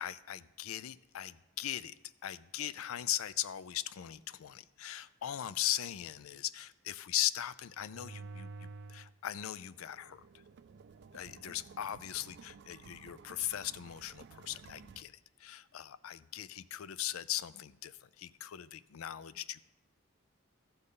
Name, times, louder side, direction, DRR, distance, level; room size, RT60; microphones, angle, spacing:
voice 1, 0.0-1.9 2.2-10.2 11.1-19.6, left 12 dB, 90° left, 17 dB, 0.4 m, -39 dB
sound 1, 7.7-9.1 9.5-15.0, right 4 dB, 55° right, 0.3 m, -52 dB
14.0 x 7.8 x 3.8 m, 0.92 s
head